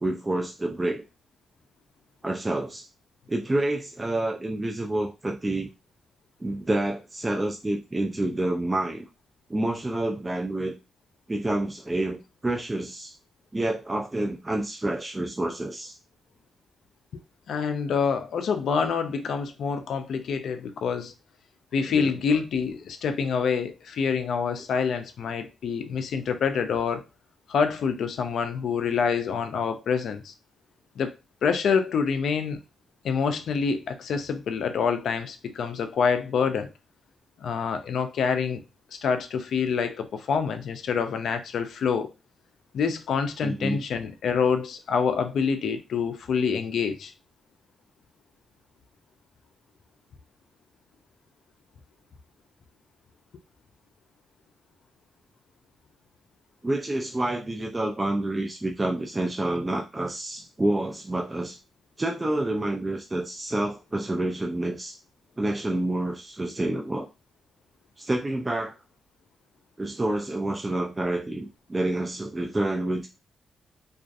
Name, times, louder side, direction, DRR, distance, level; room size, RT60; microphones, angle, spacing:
voice 1, 0.0-1.0 2.2-2.9 3.3-5.7 6.4-9.1 9.5-10.8 11.3-13.2 13.5-16.0 21.9-22.1 43.4-43.8 56.6-61.6 62.0-65.0 65.4-67.1 68.0-68.8 69.8-73.1, right 1 dB, 20° right, 0.3 m, -28 dB
voice 2, 17.5-21.1 21.7-27.0 27.5-30.3 31.0-31.1 31.4-32.6 33.0-36.7 37.4-38.6 39.0-42.1 42.7-47.1, left 6 dB, 75° left, 0.3 m, -26 dB
2.5 x 2.3 x 2.4 m
cardioid pair, 95°, 0 cm